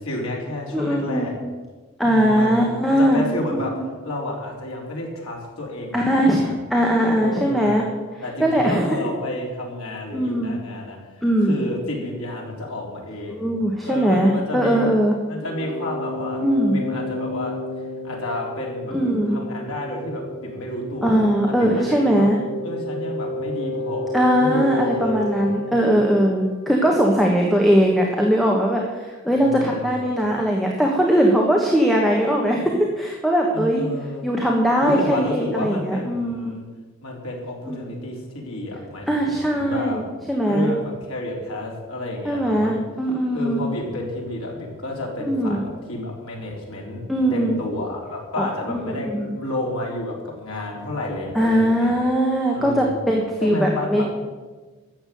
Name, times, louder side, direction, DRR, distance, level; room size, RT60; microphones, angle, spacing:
voice 1, 0.0-1.3 2.0-2.5 2.9-3.7 4.0-6.7 7.1-7.8 8.2-13.5 13.8-14.8 15.3-17.6 18.0-19.0 19.3-21.2 21.5-22.3 22.6-24.0 24.4-25.8 29.4-30.0 33.5-34.3 34.8-36.6 37.0-40.0 40.5-42.8 43.3-47.0 47.3-51.9 52.5-53.1 53.4-54.0, left 1 dB, 90° left, -1 dB, 3.8 m, -31 dB
voice 2, 0.7-1.3 2.0-3.2 3.7-3.8 5.9-7.8 8.4-9.0 10.1-10.6 11.2-11.7 13.3-15.1 16.4-16.8 18.9-19.4 21.0-22.4 24.1-33.9 34.2-36.5 37.7-37.8 39.1-40.7 42.2-43.7 45.3-45.6 47.1-47.6 48.4-49.3 51.3-54.0, equal, ahead, -1 dB, 1.3 m, -20 dB
sound 1, 15.5-27.1, left 1 dB, 50° left, 1.8 m, -31 dB
13.0 x 7.3 x 9.1 m, 1.3 s
head